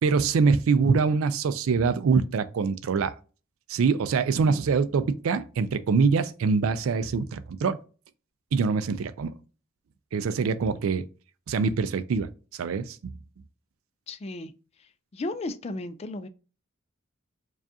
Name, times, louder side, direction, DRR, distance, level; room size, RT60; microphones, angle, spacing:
voice 1, 0.0-3.1 3.7-7.8 8.5-9.3 10.1-11.0 11.5-13.1, right 5 dB, 90° right, 0.4 m, -24 dB
voice 2, 14.1-14.5 15.1-16.3, left 2 dB, 30° left, 0.3 m, -35 dB
4.8 x 2.4 x 2.7 m
head